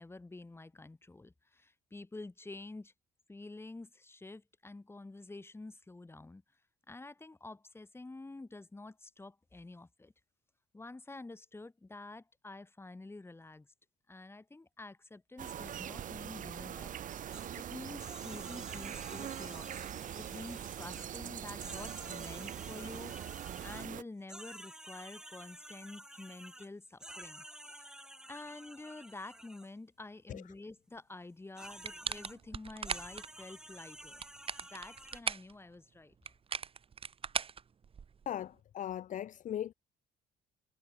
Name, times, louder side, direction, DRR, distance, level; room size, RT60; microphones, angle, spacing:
voice 1, 0.0-2.9 3.3-6.4 6.9-10.1 10.7-13.7 14.1-16.9 17.3-19.8 20.2-23.2 23.6-28.0 28.3-34.2 34.7-36.1, left 2 dB, 15° left, 5.2 m, -49 dB
sound 1, 15.4-24.0, right 10 dB, 50° right, 1.4 m, -42 dB
sound 2, 17.3-17.5 18.0-21.1 21.5-23.9 24.3-29.7 31.5-32.4 32.8-35.2, right 1 dB, 5° right, 5.6 m, -51 dB
sound 3, 31.8-33.3 34.0-35.5 36.3-38.3, right 6 dB, 35° right, 1.4 m, -39 dB
voice 2, 38.3-39.7, left 11 dB, 50° left, 0.8 m, -38 dB
cardioid pair, 110°, 17 cm